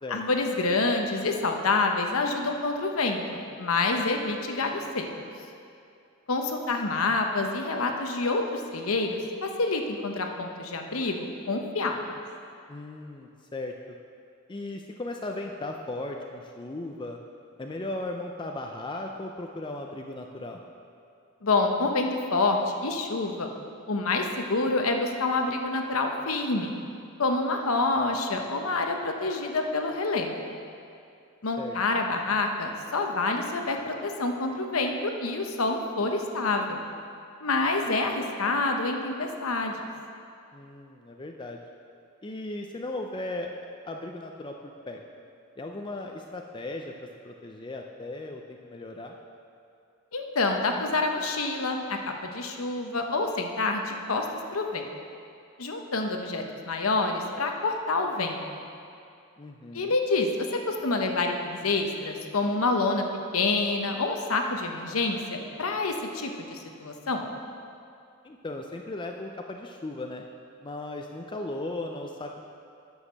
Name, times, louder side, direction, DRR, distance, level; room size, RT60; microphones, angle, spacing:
voice 1, 0.1-3.2 3.6-5.1 6.3-12.0 21.4-23.5 23.9-26.7 27.2-30.5 31.4-36.8 37.4-39.8 50.1-54.2 54.5-54.9 55.6-58.4 59.7-63.0 63.3-67.3, left 3 dB, 90° left, 3 dB, 0.9 m, -27 dB
voice 2, 12.7-14.0 14.5-17.2 17.6-20.6 31.6-31.8 40.5-41.6 42.2-43.5 43.9-45.0 45.6-46.9 47.2-49.1 59.4-59.9 68.2-70.2 70.6-72.4, left 2 dB, 25° left, 2 dB, 0.4 m, -37 dB
9.9 x 6.4 x 6.4 m, 2.5 s
head